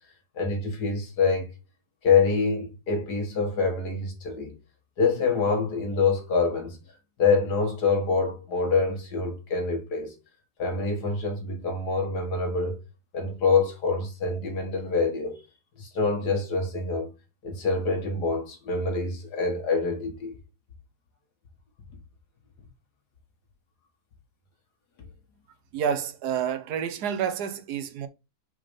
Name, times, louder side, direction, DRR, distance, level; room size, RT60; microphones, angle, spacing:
voice 1, 0.4-1.5 2.0-4.5 5.0-6.8 7.2-10.2 10.6-12.8 13.1-15.4 15.8-17.1 17.4-20.4, left 4 dB, 75° left, 2.1 m, -25 dB
voice 2, 25.7-28.1, right 8 dB, 75° right, 1.3 m, -29 dB
5.0 x 3.8 x 5.1 m
omnidirectional pair, 1.7 m